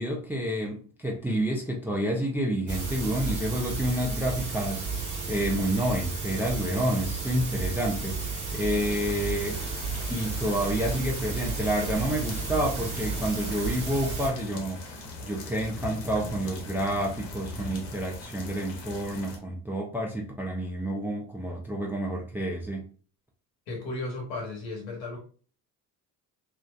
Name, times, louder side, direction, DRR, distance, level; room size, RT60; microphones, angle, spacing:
voice 1, 0.0-4.8 5.3-9.6 10.1-22.9, right 1 dB, 5° right, 0.3 m, -29 dB
sound 1, 2.7-14.3, right 4 dB, 35° right, 1.1 m, -33 dB
sound 2, 8.7-19.4, left 2 dB, 55° left, 0.9 m, -41 dB
voice 2, 23.7-25.2, left 2 dB, 85° left, 1.1 m, -35 dB
2.4 x 2.1 x 2.3 m
hypercardioid pair, 60°, 49 cm